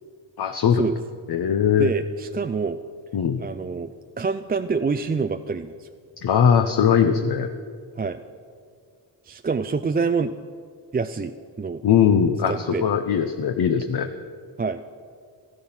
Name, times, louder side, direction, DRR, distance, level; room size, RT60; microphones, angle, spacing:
voice 1, 0.4-0.8 1.3-1.9 3.1-3.4 6.2-7.5 11.8-14.1, left 8 dB, 50° left, 6 dB, 0.9 m, -20 dB
voice 2, 1.8-2.8 3.4-3.9 4.2-5.9 8.0-8.2 9.2-10.3 10.9-11.8 12.5-12.9 14.6-14.8, right 4 dB, 20° right, 8 dB, 0.4 m, -26 dB
13.0 x 13.0 x 5.7 m, 2.2 s
supercardioid pair, 50°, 48 cm